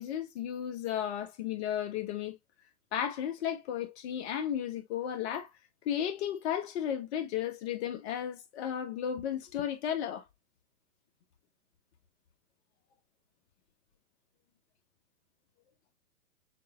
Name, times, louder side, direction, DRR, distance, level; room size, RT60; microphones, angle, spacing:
voice 1, 0.0-2.4 2.9-5.5 5.8-10.2, left 9 dB, 45° left, 1.3 m, -34 dB
6.6 x 2.8 x 2.4 m
hypercardioid pair, 130°, 45 cm